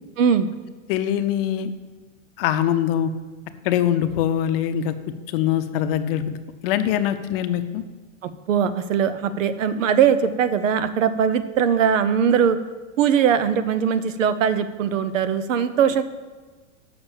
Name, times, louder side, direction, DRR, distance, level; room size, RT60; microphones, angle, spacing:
voice 1, 0.2-0.5 8.2-12.6 13.0-16.0, right 7 dB, 75° right, 12 dB, 0.9 m, -20 dB
voice 2, 0.9-1.7 2.4-3.1 3.6-4.9 5.3-6.4 6.6-7.8, left 10 dB, 45° left, 9 dB, 0.7 m, -23 dB
7.3 x 6.0 x 7.1 m, 1.3 s
supercardioid pair, 140°, 38 cm